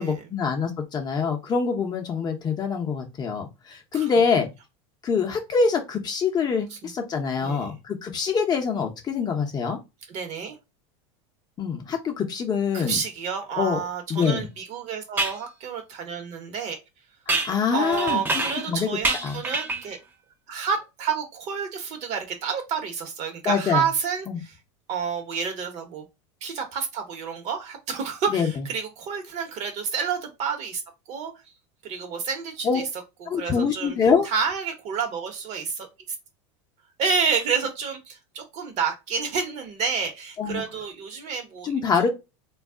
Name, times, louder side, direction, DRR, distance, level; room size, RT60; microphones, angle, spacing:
voice 1, 0.0-4.5 5.0-9.8 11.6-13.0 13.6-13.8 14.1-14.5 17.4-18.9 19.2-19.4 23.4-23.9 24.3-24.4 28.3-28.5 32.6-32.8 33.3-34.3 40.4-40.6 41.6-42.1, left 5 dB, 25° left, 0.7 m, -25 dB
voice 2, 7.4-7.8 10.1-10.6 12.7-16.8 17.7-20.0 20.5-24.5 24.9-26.0 26.4-30.8 31.1-31.3 31.8-32.8 33.3-34.0 34.2-35.9 37.0-41.7, right 6 dB, 50° right, 1.0 m, -29 dB
sound 1, 14.2-14.3 15.2-15.4 17.3-18.7 19.0-19.9, right 2 dB, 15° right, 0.6 m, -27 dB
2.3 x 2.0 x 3.5 m
supercardioid pair, 120°, 15 cm